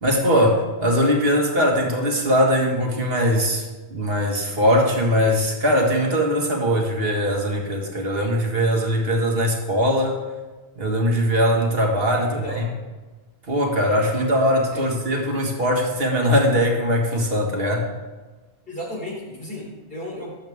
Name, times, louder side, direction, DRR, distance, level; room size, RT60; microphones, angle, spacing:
voice 1, 0.0-10.2 10.8-12.7 13.5-17.9, equal, 60° right, 0 dB, 2.1 m, -21 dB
voice 2, 12.1-12.8 14.7-14.9 18.7-20.4, equal, 55° left, -5 dB, 4.1 m, -34 dB
19.0 x 7.9 x 3.6 m, 1.3 s
omnidirectional pair, 1.1 m